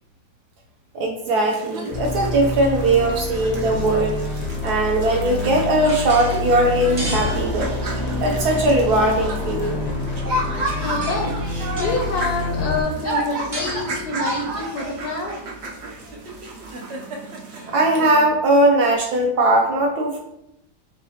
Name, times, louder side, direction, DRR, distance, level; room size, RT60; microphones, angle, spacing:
voice 1, 0.9-4.2 4.6-7.7 8.2-9.8 10.2-10.3 17.7-20.2, right 1 dB, 70° right, 1 dB, 1.0 m, -19 dB
sound 1, 1.3-18.3, right 1 dB, 85° right, 0.5 m, -32 dB
sound 2, 1.9-12.8, left 3 dB, 85° left, 1.5 m, -27 dB
sound 3, 5.9-16.7, right 1 dB, 40° right, 0.5 m, -37 dB
voice 2, 10.8-11.4 11.7-15.4, left 3 dB, 70° left, 1 dB, 1.0 m, -27 dB
6.7 x 2.4 x 2.8 m, 0.84 s
omnidirectional pair, 2.1 m